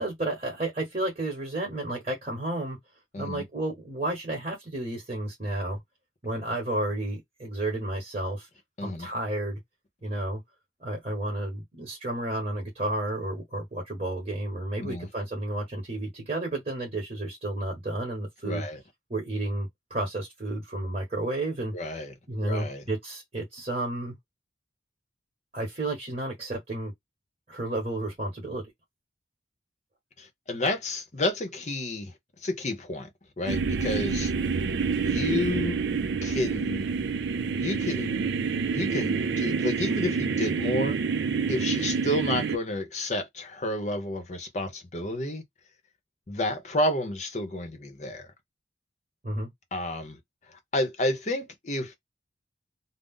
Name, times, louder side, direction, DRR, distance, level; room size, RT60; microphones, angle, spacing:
voice 1, 0.0-2.8 3.2-5.8 6.2-8.5 8.8-9.6 10.0-10.4 10.8-18.6 19.1-21.7 22.3-24.1 25.5-26.9 27.5-28.7 49.2-49.5, right 1 dB, 35° right, 1.2 m, -31 dB
voice 2, 3.1-3.4 8.8-9.1 14.8-15.1 18.4-18.8 21.7-22.1 22.4-22.8 30.2-32.1 32.4-33.1 33.4-34.3 35.0-35.8 36.2-36.8 37.5-38.4 38.7-41.0 41.5-45.4 46.3-48.3 49.7-50.2 50.5-51.9, left 1 dB, 35° left, 0.7 m, -30 dB
sound 1, 33.5-42.6, right 5 dB, 70° right, 0.4 m, -27 dB
2.6 x 2.0 x 3.6 m
head